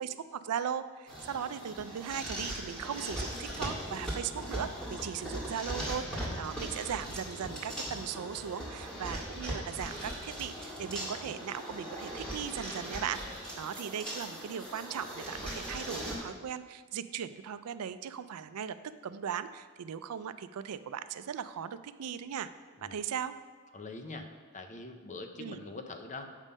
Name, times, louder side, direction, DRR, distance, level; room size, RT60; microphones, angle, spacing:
voice 1, 0.0-18.8 19.0-22.5 22.8-23.3 25.4-25.6, right 8 dB, 90° right, 13 dB, 0.4 m, -38 dB
sound 1, 1.1-16.2, right 1 dB, 5° left, 1.8 m, -39 dB
voice 2, 5.2-6.0 22.8-23.0 23.7-24.3 24.5-26.3, left 3 dB, 35° left, 6 dB, 0.7 m, -44 dB
8.2 x 5.4 x 5.3 m, 1.5 s
head